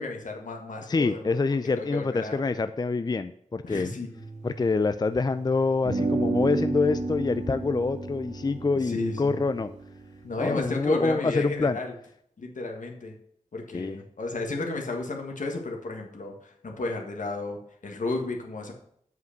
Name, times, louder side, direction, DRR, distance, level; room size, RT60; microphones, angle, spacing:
voice 1, 0.0-1.3 1.8-2.4 3.6-4.1 8.7-9.4 10.2-11.9 12.4-13.1 13.5-18.7, left 2 dB, 75° left, 2 dB, 1.7 m, -33 dB
voice 2, 0.9-3.9 4.4-9.7 10.4-11.8 13.7-14.0, left 3 dB, 30° left, 11 dB, 0.4 m, -26 dB
sound 1, 4.1-5.4 5.9-11.1, right 2 dB, 55° right, 2.3 m, -32 dB
8.0 x 5.3 x 6.6 m, 0.70 s
wide cardioid pair, 75°, 13 cm